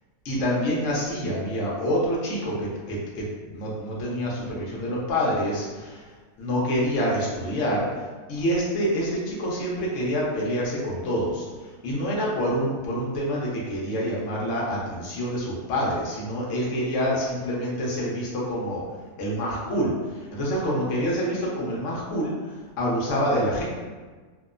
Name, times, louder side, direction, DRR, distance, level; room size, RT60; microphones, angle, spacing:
voice 1, 0.2-6.1 6.4-7.9 8.3-18.8 19.2-23.6, equal, 60° left, -4 dB, 0.9 m, -27 dB
2.8 x 2.0 x 2.3 m, 1.4 s
omnidirectional pair, 1.7 m